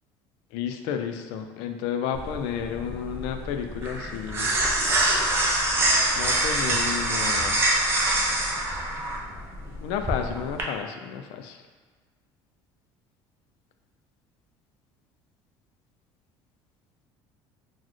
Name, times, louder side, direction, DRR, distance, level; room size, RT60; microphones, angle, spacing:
voice 1, 0.5-4.5 6.2-7.7 9.8-11.6, left 8 dB, 85° left, 6 dB, 0.4 m, -31 dB
sound 1, 2.1-10.6, right 1 dB, 25° right, 0.5 m, -25 dB
4.1 x 2.1 x 3.0 m, 1.4 s
cardioid pair, 150°, 10 cm